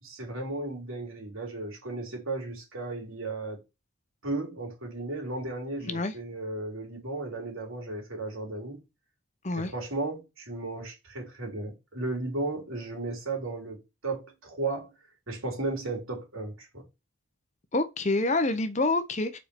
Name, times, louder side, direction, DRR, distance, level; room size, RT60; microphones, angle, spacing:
voice 1, 0.0-3.6 4.2-8.8 9.5-14.9 15.3-16.8, right 2 dB, 80° right, 3.3 m, -35 dB
voice 2, 5.8-6.1 9.4-9.7 17.7-19.4, left 2 dB, 35° left, 0.8 m, -27 dB
5.1 x 4.5 x 6.0 m
head